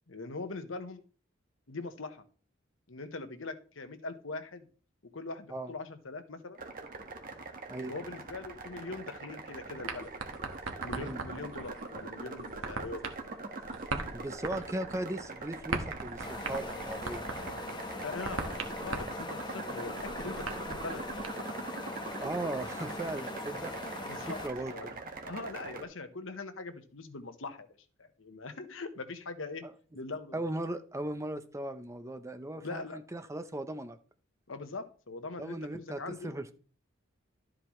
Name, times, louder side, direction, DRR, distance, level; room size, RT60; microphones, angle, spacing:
voice 1, 0.1-1.0 1.7-2.2 2.9-4.7 5.1-6.6 7.9-10.1 10.8-13.1 18.0-21.0 24.1-24.4 24.7-24.9 25.2-27.7 28.0-29.7 29.9-30.5 32.5-33.0 34.5-36.3, left 3 dB, 75° left, 8 dB, 1.2 m, -41 dB
sound 1, 6.6-25.8, right 3 dB, 45° right, 1.6 m, -43 dB
sound 2, 9.9-21.3, right 3 dB, 85° right, 1.4 m, -40 dB
voice 2, 14.1-17.3 22.2-23.7 24.3-24.7 29.6-29.7 30.3-34.0 35.4-36.5, right 1 dB, 15° right, 9 dB, 0.7 m, -38 dB
sound 3, 16.2-24.5, left 2 dB, 25° left, 1.1 m, -41 dB
12.5 x 7.7 x 3.2 m, 0.40 s
head